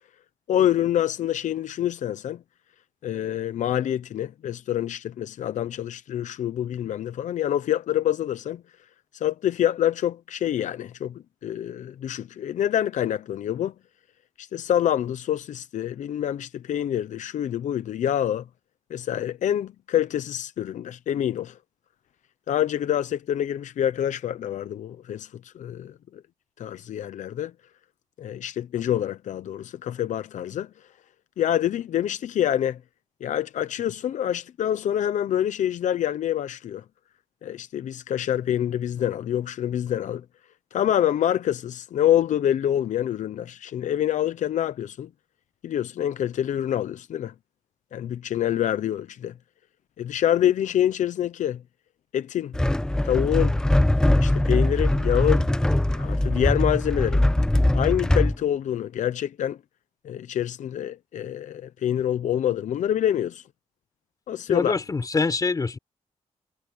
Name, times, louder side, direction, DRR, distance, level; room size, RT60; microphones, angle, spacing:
voice 1, 0.5-2.4 3.0-8.6 9.1-13.7 14.4-18.5 18.9-21.6 22.5-26.2 26.6-27.5 28.2-30.7 31.4-32.8 33.2-36.8 37.4-40.2 40.7-45.1 45.6-47.3 47.9-49.3 50.0-51.6 52.1-52.5 53.0-53.6 54.1-55.5 56.0-57.2 57.7-59.6 60.0-63.4 64.3-64.7, left 11 dB, 90° left, 0.7 m, -26 dB
sound 1, 52.5-58.4, left 1 dB, 5° left, 0.4 m, -21 dB
voice 2, 64.5-65.8, left 4 dB, 30° left, 4.1 m, -25 dB
wide cardioid pair, 135°, 12 cm